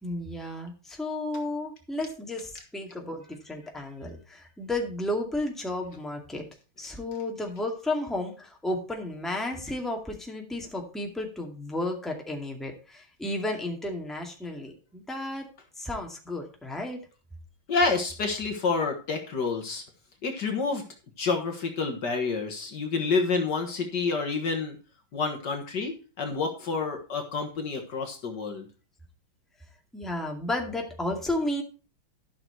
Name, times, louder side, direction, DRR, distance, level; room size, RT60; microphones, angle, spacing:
voice 1, 0.0-6.4 6.8-15.5 15.8-17.0 29.9-31.6, left 1 dB, ahead, 1 dB, 2.0 m, -33 dB
voice 2, 17.7-19.8 20.2-20.8 21.2-24.8 25.1-28.7, left 4 dB, 60° left, 4 dB, 1.9 m, -28 dB
13.0 x 6.3 x 4.5 m, 0.34 s
omnidirectional pair, 2.2 m